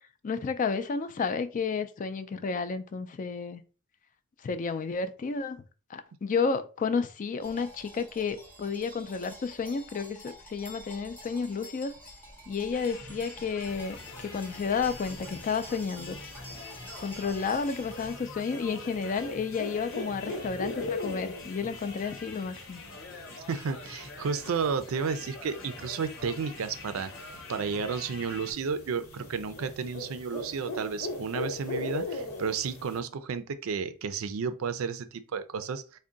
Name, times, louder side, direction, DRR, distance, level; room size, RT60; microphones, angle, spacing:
voice 1, 0.2-3.6 4.4-5.6 5.9-11.9 12.5-16.2 17.0-22.8, left 5 dB, 40° left, 0.3 m, -31 dB
sound 1, 7.4-18.2, equal, 10° left, 0.7 m, -48 dB
sound 2, 12.7-28.5, left 3 dB, 60° left, 0.9 m, -46 dB
sound 3, 13.7-33.0, left 2 dB, 85° left, 1.0 m, -41 dB
voice 2, 23.5-36.0, right 5 dB, 70° right, 0.4 m, -32 dB
3.5 x 2.1 x 3.8 m
head